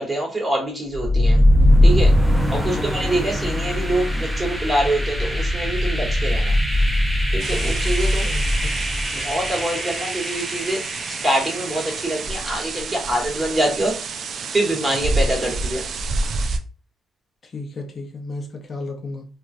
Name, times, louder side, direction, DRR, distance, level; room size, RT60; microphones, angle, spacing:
voice 1, 0.0-1.4 1.8-2.1 2.5-6.5 7.3-8.3 9.1-10.8 11.2-13.9 14.5-15.8, right 1 dB, 20° right, -2 dB, 1.3 m, -24 dB
sound 1, 0.9-12.8, left 1 dB, 5° right, 0.7 m, -21 dB
sound 2, 7.4-16.6, right 3 dB, 60° right, 0.3 m, -29 dB
voice 2, 8.2-8.8 17.4-19.3, left 2 dB, 45° left, 2 dB, 0.6 m, -34 dB
3.1 x 2.4 x 2.5 m, 0.37 s
cardioid pair, 90°, 0 cm